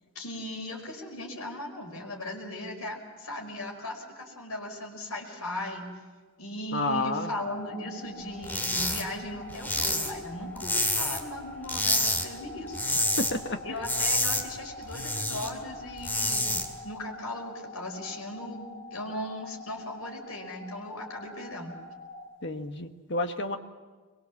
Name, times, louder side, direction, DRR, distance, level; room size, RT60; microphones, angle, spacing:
voice 1, 0.2-5.9 6.4-12.8 13.6-16.6 16.8-21.7, left 1 dB, 85° left, 1 dB, 5.2 m, -38 dB
voice 2, 6.7-7.3 13.2-13.6 22.4-23.6, left 2 dB, 55° left, 6 dB, 1.5 m, -30 dB
sound 1, 7.2-22.2, left 2 dB, 35° left, 4.6 m, -45 dB
sound 2, 8.4-9.0 9.3-11.3 11.6-12.2 12.6-13.3 13.6-15.5 15.9-16.6, left 1 dB, 10° left, 2.2 m, -28 dB
23.5 x 22.5 x 7.3 m, 1.4 s
head